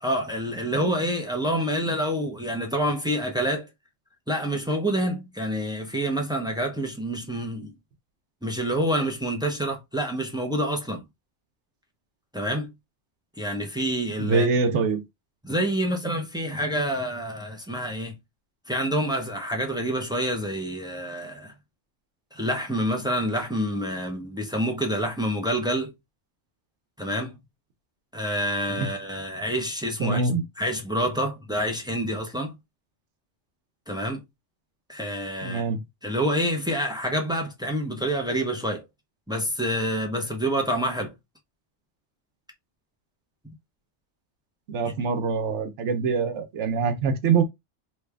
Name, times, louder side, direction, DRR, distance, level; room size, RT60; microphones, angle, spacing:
voice 1, 0.0-3.7 4.3-7.7 8.4-11.0 12.3-12.7 13.4-14.5 15.4-18.2 18.7-21.5 22.3-25.9 27.0-27.4 28.1-30.2 30.6-32.6 33.9-34.2 34.9-35.6 36.0-38.9 39.3-41.1, equal, 5° right, 0.5 m, -27 dB
voice 2, 14.2-15.0 28.8-28.9 30.0-30.4 35.4-35.8 44.7-47.4, right 5 dB, 80° right, 1.1 m, -24 dB
3.2 x 2.4 x 3.3 m
omnidirectional pair, 1.2 m